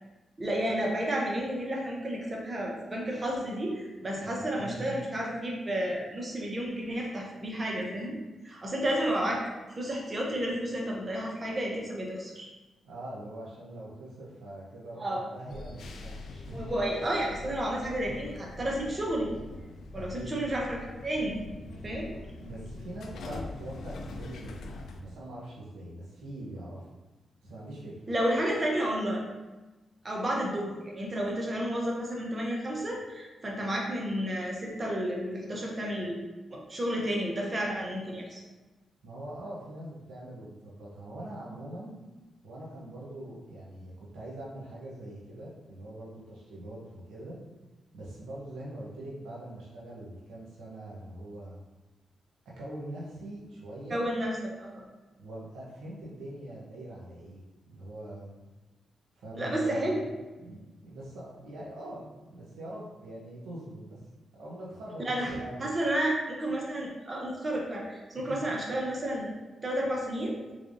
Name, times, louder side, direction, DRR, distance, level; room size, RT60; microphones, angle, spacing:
voice 1, 0.4-8.2 8.4-9.4 9.8-12.5 15.0-15.2 16.5-19.3 19.9-21.4 21.8-22.2 28.1-29.2 30.0-36.2 36.5-38.4 53.9-54.8 59.4-60.0 65.1-65.3 65.6-66.1 66.4-69.3 69.6-70.4, right 1 dB, 35° right, -2 dB, 0.8 m, -31 dB
voice 2, 4.1-5.0 12.8-16.6 19.9-20.4 22.4-26.9 27.4-28.1 39.0-42.0 42.4-47.4 47.9-51.6 52.4-54.0 55.2-58.4 59.2-60.1 60.4-64.0 64.3-65.7 68.2-68.4, right 1 dB, 90° right, -6 dB, 1.0 m, -43 dB
sound 1, 15.5-25.0, left 2 dB, 80° left, 0.4 m, -43 dB
3.6 x 3.3 x 2.6 m, 1.1 s
cardioid pair, 65°, 0 cm